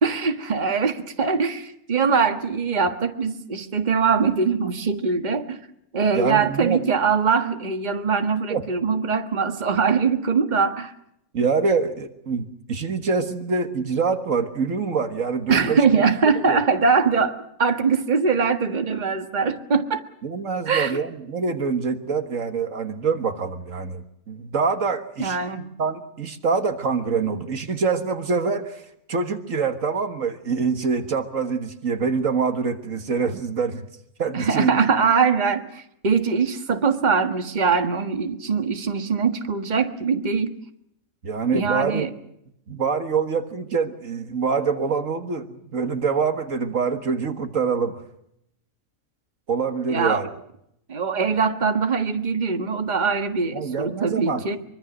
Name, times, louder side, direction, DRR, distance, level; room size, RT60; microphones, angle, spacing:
voice 1, 0.0-5.6 5.9-10.9 15.5-20.0 20.7-21.0 25.2-25.7 34.3-40.5 41.5-42.1 49.9-50.2 50.9-54.6, right 5 dB, 30° right, 7 dB, 1.7 m, -22 dB
voice 2, 6.1-6.8 8.5-8.6 11.3-15.8 16.5-16.6 20.2-25.4 25.8-28.8 29.1-33.9 34.2-34.8 41.2-42.1 42.7-48.0 49.5-50.3 53.5-54.4, right 5 dB, 65° right, 8 dB, 1.9 m, -25 dB
24.5 x 24.0 x 6.2 m, 0.77 s
omnidirectional pair, 1.5 m